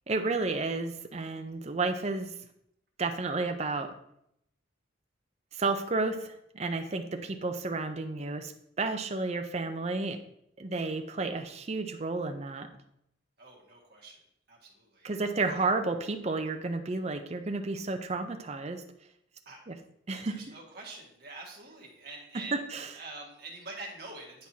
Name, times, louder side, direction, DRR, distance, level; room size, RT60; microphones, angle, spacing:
voice 1, 0.1-2.3 3.0-3.9 5.5-8.5 8.8-10.2 10.6-12.7 15.0-18.8 19.7-19.8 20.1-20.4 22.3-22.4 22.7-22.8, right 3 dB, 35° right, 6 dB, 0.5 m, -31 dB
voice 2, 13.4-14.2 14.5-15.2 19.5-19.6 20.1-24.5, right 3 dB, 50° right, -2 dB, 1.8 m, -46 dB
10.5 x 4.5 x 2.8 m, 0.75 s
head